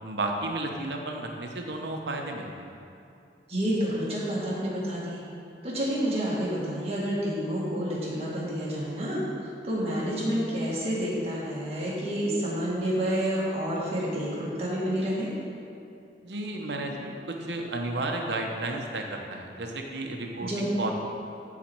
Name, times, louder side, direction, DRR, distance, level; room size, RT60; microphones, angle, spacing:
voice 1, 0.0-2.8 16.2-20.9, right 2 dB, 80° right, 2 dB, 0.9 m, -33 dB
voice 2, 3.5-5.2 5.6-9.2 9.6-15.3 20.4-20.9, equal, 35° right, -7 dB, 1.9 m, -29 dB
11.5 x 4.2 x 4.6 m, 2.6 s
head